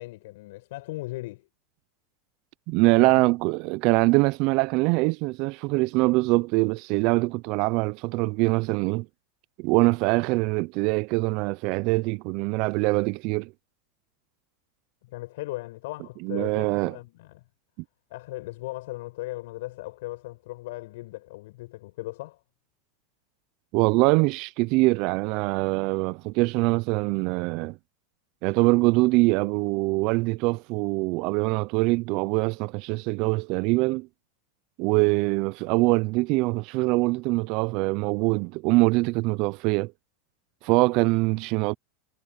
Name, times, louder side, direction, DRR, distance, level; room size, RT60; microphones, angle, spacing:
voice 1, 0.0-1.5 3.0-3.3 15.0-17.4 18.1-22.4, left 19 dB, 70° left, 7.3 m, -38 dB
voice 2, 2.7-9.1 9.6-13.5 16.2-17.0 23.7-27.8 28.4-34.1 34.8-39.9 40.6-41.7, right 24 dB, 55° right, 0.5 m, -23 dB
hypercardioid pair, 115°, 0 cm